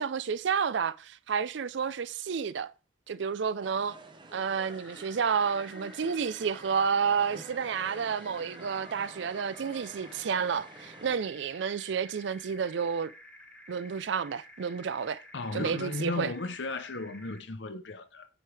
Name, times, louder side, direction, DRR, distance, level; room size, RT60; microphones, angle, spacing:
voice 1, 0.0-2.7 3.1-4.0 4.3-13.1 13.7-15.2 15.5-16.3, right 6 dB, 60° right, 0.4 m, -30 dB
sound 1, 3.6-11.2, right 2 dB, 25° right, 0.8 m, -49 dB
sound 2, 4.6-17.4, left 1 dB, 5° left, 0.8 m, -52 dB
voice 2, 15.3-18.3, left 3 dB, 60° left, 0.8 m, -35 dB
10.0 x 4.6 x 3.4 m
head